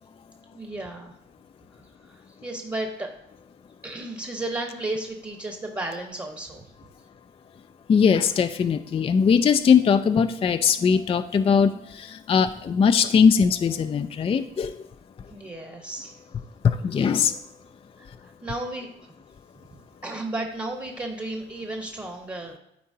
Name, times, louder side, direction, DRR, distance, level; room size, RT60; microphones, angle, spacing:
voice 1, 0.5-1.1 2.0-3.1 3.8-6.6 15.3-16.2 18.0-18.9 20.0-22.6, right 2 dB, 20° right, 2 dB, 1.1 m, -33 dB
voice 2, 7.9-14.8 16.6-17.4, left 6 dB, 30° left, 9 dB, 0.3 m, -20 dB
12.5 x 4.4 x 2.8 m, 0.84 s
cardioid pair, 90°, 20 cm